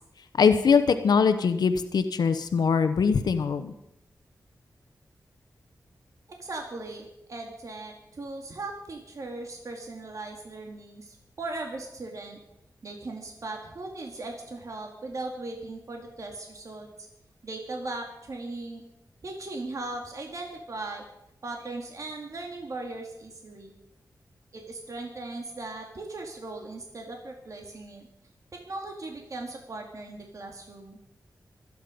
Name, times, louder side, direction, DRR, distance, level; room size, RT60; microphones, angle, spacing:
voice 1, 0.4-3.7, left 6 dB, 90° left, 9 dB, 0.9 m, -22 dB
voice 2, 6.3-12.4 12.8-17.1 17.4-18.8 19.2-21.0 21.4-23.7 24.5-28.1 28.5-31.0, right 2 dB, 55° right, 2 dB, 2.4 m, -38 dB
24.0 x 9.5 x 5.2 m, 0.83 s
wide cardioid pair, 95°, 7 cm